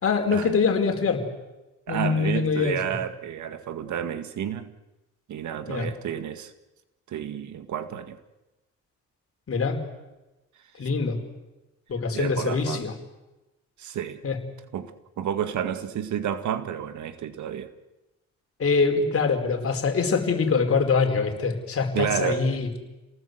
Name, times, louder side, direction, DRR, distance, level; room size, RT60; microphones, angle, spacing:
voice 1, 0.0-1.2 1.9-2.8 5.7-5.9 9.5-9.8 10.8-11.2 11.9-12.9 14.2-14.4 18.6-22.7, left 4 dB, 50° left, 4.6 m, -24 dB
voice 2, 1.9-4.7 5.3-6.5 7.1-8.2 12.1-12.8 13.8-14.2 14.7-17.7 21.9-22.4, right 9 dB, 70° right, 2.0 m, -30 dB
28.5 x 18.5 x 8.1 m
cardioid pair, 90°, 30 cm